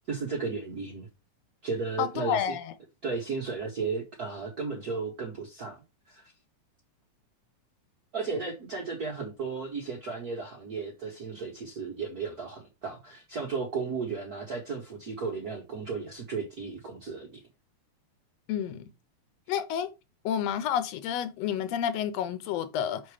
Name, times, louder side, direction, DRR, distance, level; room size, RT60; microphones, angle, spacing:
voice 1, 0.1-1.1 1.6-2.6 3.0-5.8 6.1-6.3 8.1-17.4, right 4 dB, 80° right, 0.8 m, -34 dB
voice 2, 2.0-2.7 18.5-18.9 19.5-19.9 20.3-23.0, left 9 dB, 75° left, 1.6 m, -30 dB
5.9 x 4.3 x 4.8 m
omnidirectional pair, 3.5 m